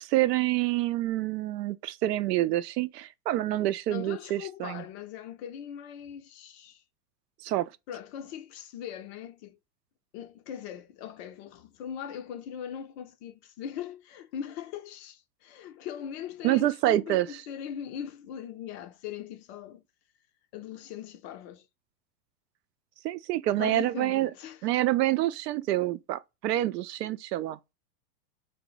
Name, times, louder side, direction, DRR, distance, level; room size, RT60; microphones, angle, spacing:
voice 1, 0.0-4.8 7.4-7.7 16.4-17.3 23.0-24.3 24.6-27.6, right 15 dB, 75° right, 0.5 m, -27 dB
voice 2, 3.9-6.8 7.9-9.6 10.1-19.8 20.5-21.7 23.5-24.7, left 9 dB, 40° left, 0.5 m, -40 dB
3.7 x 2.0 x 3.8 m
hypercardioid pair, 125°, 49 cm